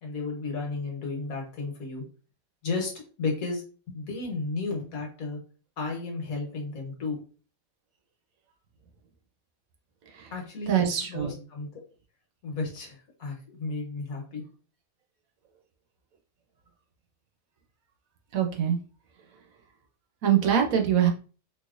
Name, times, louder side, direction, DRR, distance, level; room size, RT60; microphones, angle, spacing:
voice 1, 0.0-2.0 2.6-5.4 5.8-7.2 10.3-11.8 12.4-14.5, left 3 dB, 75° left, 0 dB, 1.5 m, -33 dB
voice 2, 10.7-11.3 18.3-18.8 20.2-21.1, right 9 dB, 75° right, 3 dB, 1.2 m, -23 dB
4.1 x 2.8 x 2.4 m, 0.37 s
omnidirectional pair, 1.5 m